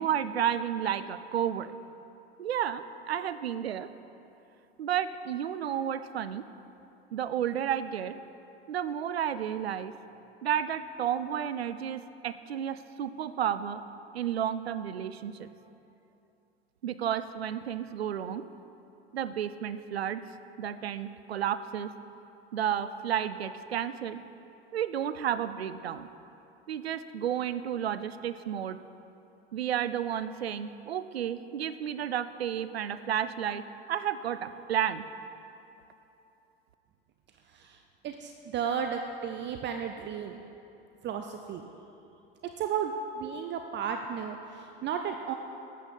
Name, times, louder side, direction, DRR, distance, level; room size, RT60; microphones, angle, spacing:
voice 1, 0.0-1.8 2.4-3.9 4.8-6.5 7.1-8.2 8.7-9.9 10.4-13.8 14.1-15.5 16.8-18.4 19.1-20.2 20.6-21.9 22.5-24.2 24.7-26.1 26.7-28.8 29.5-35.1, right 9 dB, 90° right, 13 dB, 0.5 m, -32 dB
voice 2, 37.5-37.8 38.0-40.4 41.0-41.7 42.6-45.3, right 7 dB, 35° right, 5 dB, 0.6 m, -34 dB
12.0 x 8.4 x 5.3 m, 2.8 s
hypercardioid pair, 80°, 30 cm